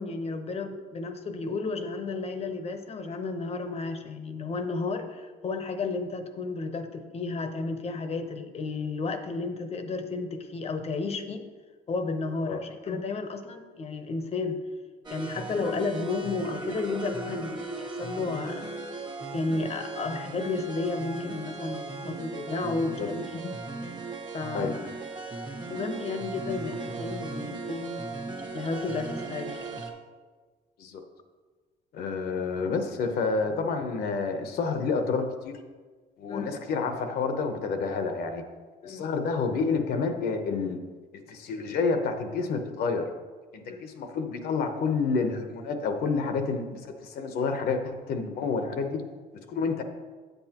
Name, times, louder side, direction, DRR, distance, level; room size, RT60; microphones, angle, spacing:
voice 1, 0.0-11.5 11.9-14.6 15.1-18.6 19.3-23.6 23.8-23.9 24.3-24.8 25.7-28.1 28.5-29.8 36.3-36.5 38.8-39.1 43.7-43.8, left 3 dB, 35° left, 8 dB, 0.8 m, -32 dB
sound 1, 15.0-29.9, right 3 dB, 25° right, 1.1 m, -37 dB
voice 2, 31.9-35.6 36.2-38.4 38.8-40.8 41.3-43.1 43.5-49.0 49.5-49.8, left 4 dB, 65° left, 6 dB, 0.9 m, -29 dB
8.4 x 7.9 x 2.9 m, 1.4 s
cardioid pair, 110°, 17 cm